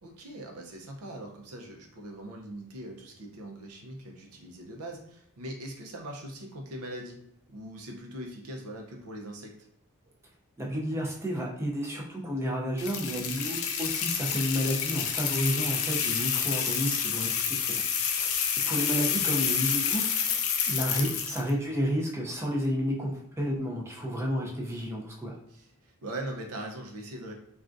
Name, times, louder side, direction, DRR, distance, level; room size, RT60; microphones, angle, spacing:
voice 1, 0.0-7.2 7.5-9.5 20.9-21.2 25.5-27.3, right 1 dB, 85° right, 2 dB, 0.6 m, -41 dB
voice 2, 10.6-18.3 18.7-20.4 20.7-25.4, equal, 10° right, -2 dB, 0.5 m, -31 dB
sound 1, 12.8-21.5, left 7 dB, 65° left, 0.4 m, -29 dB
3.4 x 2.4 x 2.5 m, 0.72 s
head